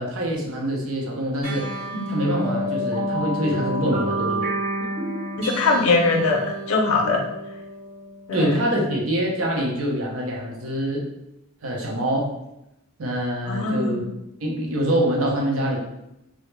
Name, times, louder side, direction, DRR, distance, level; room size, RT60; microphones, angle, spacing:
voice 1, 0.0-1.7 2.1-4.5 8.3-11.1 11.6-12.3 13.0-14.1 14.4-15.8, right 1 dB, 75° right, -1 dB, 0.6 m, -25 dB
sound 1, 1.4-8.3, equal, 30° right, 1.0 m, -29 dB
voice 2, 5.4-6.4 6.7-7.2 8.3-8.5 13.5-14.0, left 3 dB, 85° left, 1 dB, 0.5 m, -21 dB
2.1 x 2.0 x 3.0 m, 0.89 s
head